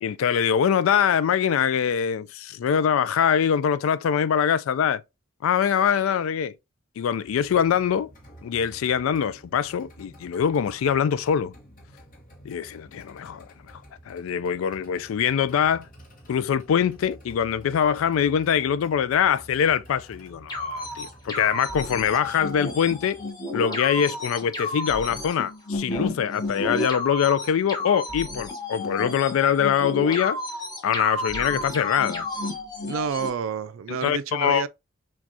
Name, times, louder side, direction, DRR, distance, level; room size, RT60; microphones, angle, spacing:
voice 1, 0.0-5.0 5.4-6.5 7.0-8.1 8.4-11.5 12.4-13.5 14.1-15.9 16.3-23.2 23.5-30.4 30.8-32.3 33.9-34.7, left 8 dB, 80° left, 0.3 m, -23 dB
sound 1, 7.2-23.3, equal, 45° left, 1.1 m, -50 dB
sound 2, 20.5-33.3, left 2 dB, 20° left, 1.0 m, -32 dB
Walk footsteps, 22.2-22.6 23.3-25.2 25.6-25.7 25.9-26.8 27.1-27.2 27.8-27.9, equal, 5° right, 0.8 m, -48 dB
voice 2, 32.8-34.7, right 6 dB, 75° right, 0.4 m, -29 dB
5.9 x 2.3 x 2.6 m
head